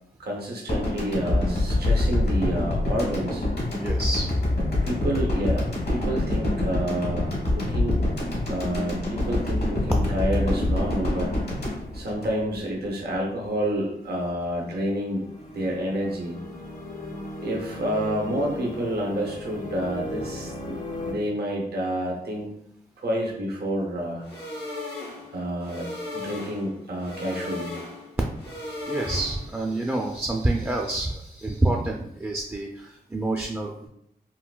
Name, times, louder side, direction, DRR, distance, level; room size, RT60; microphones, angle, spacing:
voice 1, 0.2-3.4 4.8-8.0 8.5-11.3 11.7-15.2 15.5-16.4 17.4-22.5 23.0-24.2 25.3-27.7, equal, 75° right, -1 dB, 0.7 m, -29 dB
sound 1, 0.7-12.9, left 1 dB, 70° left, 1.1 m, -25 dB
voice 2, 3.8-4.3 28.9-33.9, right 2 dB, 15° right, 0 dB, 0.3 m, -27 dB
sound 2, 14.6-21.1, left 1 dB, 55° left, 0.6 m, -37 dB
sound 3, 24.2-29.6, left 2 dB, 90° left, 0.8 m, -37 dB
3.8 x 2.2 x 2.2 m, 0.75 s
cardioid pair, 70°, 17 cm